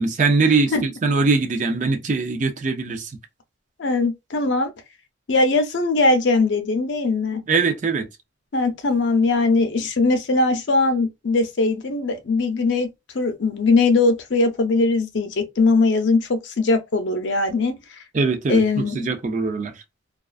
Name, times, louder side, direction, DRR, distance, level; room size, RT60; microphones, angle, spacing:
voice 1, 0.0-3.1 7.5-8.1 18.1-19.7, right 4 dB, 40° right, 0.4 m, -21 dB
voice 2, 3.8-4.7 5.3-7.4 8.5-12.9 13.1-17.7 18.5-19.1, left 3 dB, 70° left, 0.5 m, -20 dB
2.3 x 2.3 x 2.3 m
head